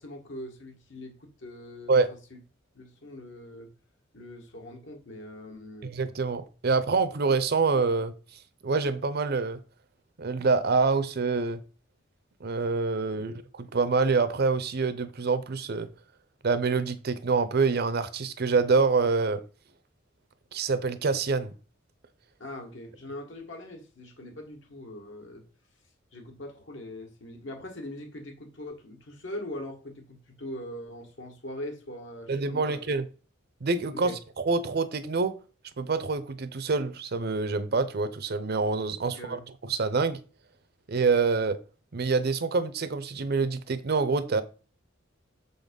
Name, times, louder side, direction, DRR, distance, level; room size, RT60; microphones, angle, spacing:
voice 1, 0.0-2.0 2.3-2.4 2.7-3.7 4.1-6.0 13.1-13.3 22.4-25.4 26.1-32.8 33.9-34.2 39.1-39.4, left 1 dB, 65° left, 1.7 m, -41 dB
voice 2, 5.8-8.1 8.6-9.6 10.2-11.6 12.4-15.9 16.4-19.4 20.5-21.5 32.3-33.1 33.6-34.1 34.4-35.4 35.8-39.4 39.7-40.2 40.9-41.6 41.9-44.4, right 4 dB, 55° right, 0.6 m, -26 dB
6.8 x 3.9 x 5.2 m
head